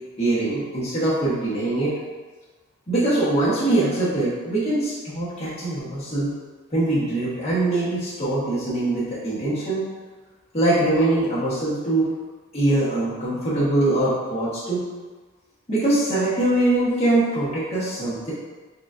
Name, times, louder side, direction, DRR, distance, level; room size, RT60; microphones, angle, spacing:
voice 1, 0.2-1.9 2.9-6.3 6.7-9.8 10.5-12.1 12.5-14.8 15.7-18.3, right 2 dB, 30° left, -9 dB, 1.0 m, -22 dB
6.4 x 2.4 x 2.5 m, 1.3 s
head